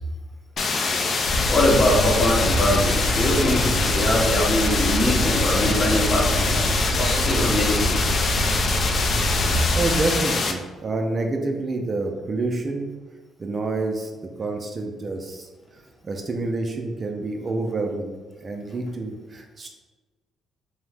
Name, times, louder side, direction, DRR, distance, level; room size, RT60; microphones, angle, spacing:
sound 1, 0.6-10.5, left 4 dB, 50° left, 0.3 m, -24 dB
sound 2, 1.3-10.0, equal, 75° left, 0.7 m, -25 dB
voice 1, 1.5-8.0 9.6-9.8, left 1 dB, 30° left, -1 dB, 0.7 m, -23 dB
voice 2, 9.4-12.9 13.4-14.1 14.4-15.5 16.0-18.1 18.4-19.7, right 3 dB, 35° right, 3 dB, 0.3 m, -28 dB
2.7 x 2.0 x 3.2 m, 1.3 s
cardioid pair, 90°, 0 cm